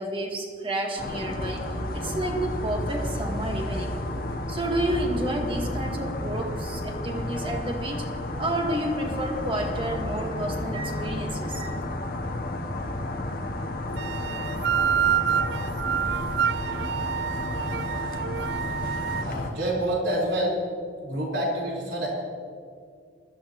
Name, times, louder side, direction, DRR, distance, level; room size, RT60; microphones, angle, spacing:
voice 1, 0.0-3.9 4.5-8.1 8.4-11.8, right 1 dB, 25° right, 1 dB, 1.6 m, -30 dB
sound 1, 1.0-19.5, left 1 dB, 50° left, 1.0 m, -32 dB
sound 2, 14.0-19.3, right 8 dB, 60° right, 0.3 m, -27 dB
voice 2, 19.2-20.6 21.0-22.1, right 1 dB, 75° right, -4 dB, 4.3 m, -27 dB
20.5 x 13.5 x 3.0 m, 2.2 s
head